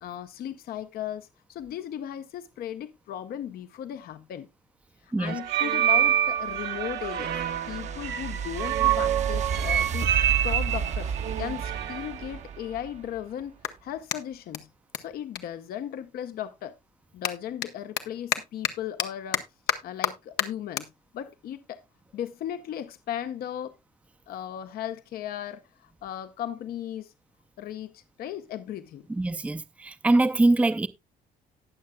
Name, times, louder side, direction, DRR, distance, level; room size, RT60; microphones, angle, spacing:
voice 1, 0.0-4.5 5.0-7.4 7.7-13.5 13.8-14.7 15.0-16.8 17.1-19.4 19.8-21.8 22.1-23.7 24.3-27.1 27.6-29.1, left 10 dB, 65° left, 0.7 m, -36 dB
sound 1, 5.3-12.2, right 11 dB, 75° right, 1.2 m, -27 dB
sound 2, 6.0-13.2, right 6 dB, 45° right, 0.8 m, -32 dB
Clapping, 13.6-16.3 16.6-23.3, left 11 dB, 85° left, 1.0 m, -34 dB
voice 2, 29.1-30.9, right 2 dB, 10° right, 0.5 m, -23 dB
18.5 x 6.6 x 2.2 m
cardioid pair, 110°, 17 cm